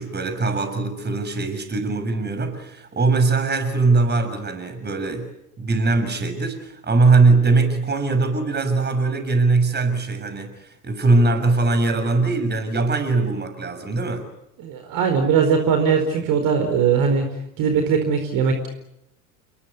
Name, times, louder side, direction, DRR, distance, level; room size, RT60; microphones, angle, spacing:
voice 1, 0.0-5.3 5.6-14.3, right 3 dB, 25° right, 8 dB, 6.7 m, -21 dB
voice 2, 14.6-17.3 17.6-18.7, right 6 dB, 50° right, 6 dB, 4.6 m, -20 dB
29.5 x 22.0 x 8.4 m, 0.83 s
figure-of-eight pair, 75°, 43 cm